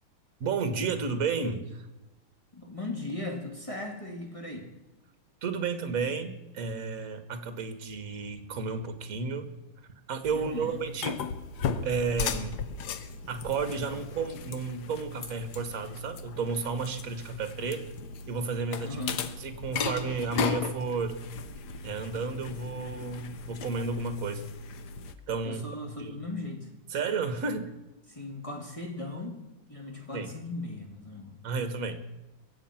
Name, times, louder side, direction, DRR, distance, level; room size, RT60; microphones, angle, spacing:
voice 1, 0.4-1.8 5.4-9.5 10.1-11.2 11.8-12.6 13.3-17.8 18.3-19.0 19.4-21.2 21.8-24.5 25.3-26.2 26.9-27.7 30.1-30.3 31.4-32.0, right 4 dB, 45° right, 10 dB, 1.6 m, -32 dB
voice 2, 2.5-4.7 10.3-10.8 18.8-19.2 25.4-26.7 28.1-29.4 29.7-31.3, left 2 dB, 15° left, 2 dB, 2.1 m, -38 dB
sound 1, 10.2-25.1, left 5 dB, 60° left, 1.3 m, -36 dB
23.0 x 8.0 x 5.8 m, 1.0 s
omnidirectional pair, 2.3 m